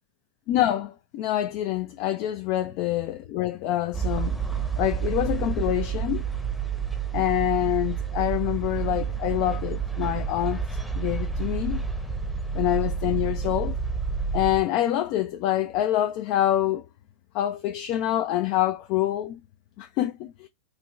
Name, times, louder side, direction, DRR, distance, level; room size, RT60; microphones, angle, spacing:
voice 1, 0.5-4.4 4.8-6.2 7.1-10.6 10.9-11.8 12.5-13.8 14.3-16.9 17.3-19.4 19.8-20.5, left 13 dB, 45° left, 0.4 m, -26 dB
sound 1, 3.9-14.6, right 6 dB, ahead, 0.8 m, -29 dB
4.5 x 2.9 x 2.3 m
figure-of-eight pair, 90°, 0 cm